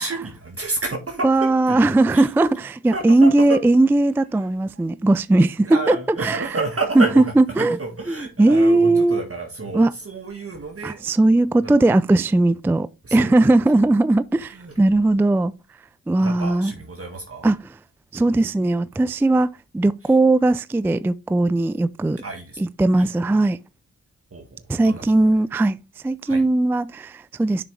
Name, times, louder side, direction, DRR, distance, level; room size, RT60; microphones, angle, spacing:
voice 1, 0.0-2.4 2.9-3.6 4.4-4.5 5.6-11.0 11.6-11.9 13.0-13.4 13.7-13.8 14.4-14.7 16.2-17.5 20.0-20.1 22.2-22.6 23.0-23.1 24.3-25.4 26.3-26.4, right 3 dB, 35° right, 1.7 m, -31 dB
voice 2, 1.2-6.5 7.0-7.8 8.1-9.2 9.7-9.9 10.8-15.5 16.1-16.7 17.4-17.6 18.1-22.2 22.6-23.6 24.7-25.8 26.0-27.6, right 2 dB, 5° right, 0.3 m, -18 dB
6.6 x 6.2 x 3.2 m
supercardioid pair, 50°, 37 cm